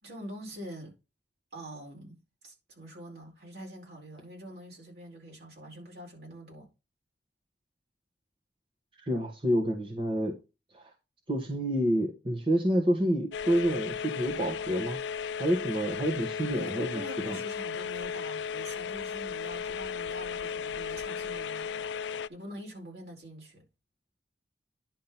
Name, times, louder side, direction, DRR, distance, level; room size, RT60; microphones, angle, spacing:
voice 1, 0.0-0.9 1.5-6.7 16.4-23.6, equal, 65° right, 4.8 m, -45 dB
voice 2, 9.0-10.3 10.7-10.9 11.3-15.0 15.4-17.4, equal, 30° right, 1.5 m, -28 dB
sound 1, 13.3-22.3, left 6 dB, 80° left, 0.4 m, -35 dB
10.5 x 3.8 x 5.8 m
head